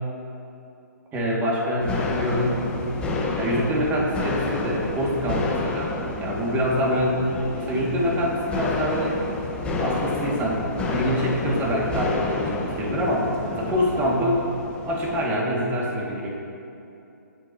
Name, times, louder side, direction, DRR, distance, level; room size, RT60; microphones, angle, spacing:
voice 1, 1.1-2.7 3.4-5.9 6.2-7.3 7.5-9.2 9.8-10.6 10.9-14.4 14.9-16.3, equal, 15° right, -3 dB, 2.5 m, -25 dB
sound 1, 1.8-15.3, left 3 dB, 10° left, 1.3 m, -30 dB
25.0 x 8.5 x 3.1 m, 2.7 s
figure-of-eight pair, 140°, 10 cm